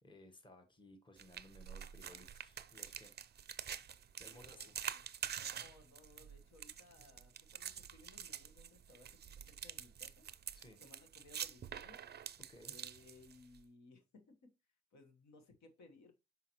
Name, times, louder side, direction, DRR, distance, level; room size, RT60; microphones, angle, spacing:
voice 1, 0.0-3.2 4.0-4.7 10.5-10.8 12.5-12.7, left 1 dB, 15° left, 1.2 m, -60 dB
sound 1, 1.2-13.6, right 8 dB, 35° right, 0.5 m, -47 dB
voice 2, 4.3-5.0 5.3-10.3 10.8-12.0 12.6-14.5 14.9-16.1, left 2 dB, 65° left, 1.3 m, -62 dB
5.7 x 5.6 x 3.0 m
cardioid pair, 90°, 30 cm